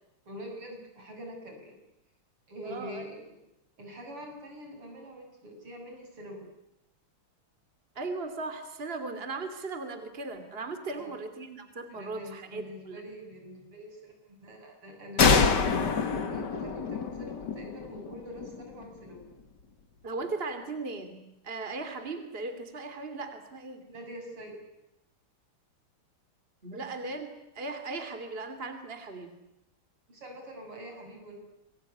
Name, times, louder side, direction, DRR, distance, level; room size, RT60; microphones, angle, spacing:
voice 1, 0.3-1.8 2.5-3.4 3.8-6.5 10.9-11.2 11.9-19.3 23.9-24.6 30.1-31.4, equal, 80° right, 3 dB, 8.2 m, -45 dB
voice 2, 2.6-3.0 7.9-13.1 20.0-23.8 26.6-29.3, right 3 dB, 25° right, 8 dB, 2.9 m, -37 dB
sound 1, 15.2-18.7, left 5 dB, 50° left, 2.5 m, -26 dB
27.5 x 22.0 x 9.8 m, 0.89 s
omnidirectional pair, 2.4 m